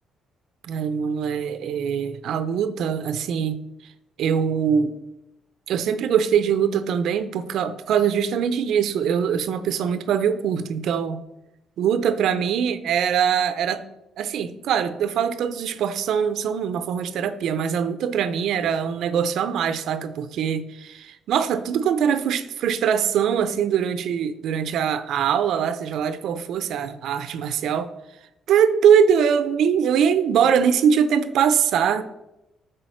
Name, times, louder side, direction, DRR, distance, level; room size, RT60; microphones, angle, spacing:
voice 1, 0.6-3.6 4.2-5.0 5.7-11.2 11.8-13.8 14.2-27.9 28.5-32.0, right 7 dB, 70° right, 12 dB, 0.6 m, -22 dB
9.3 x 3.9 x 6.4 m, 0.91 s
cardioid pair, 100°, 0 cm